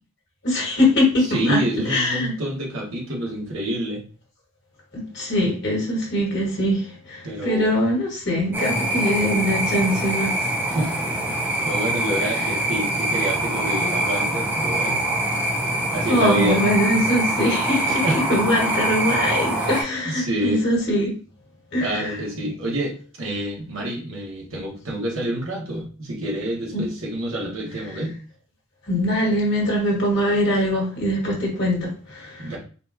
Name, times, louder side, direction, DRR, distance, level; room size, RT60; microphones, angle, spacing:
voice 1, 0.4-1.6 1.9-2.3 4.9-10.5 16.1-21.1 21.7-22.2 26.7-26.8 28.9-32.5, left 1 dB, 50° left, -3 dB, 1.6 m, -22 dB
voice 2, 1.3-4.0 7.2-7.7 10.6-11.0 11.3-11.4 11.6-15.0 15.9-16.6 17.8-18.2 19.6-19.7 20.0-20.6 21.8-28.1 32.4-32.6, right 1 dB, 65° right, -2 dB, 1.2 m, -27 dB
sound 1, 8.5-19.8, right 1 dB, 10° right, 0.5 m, -24 dB
4.2 x 2.3 x 2.7 m, 0.38 s
head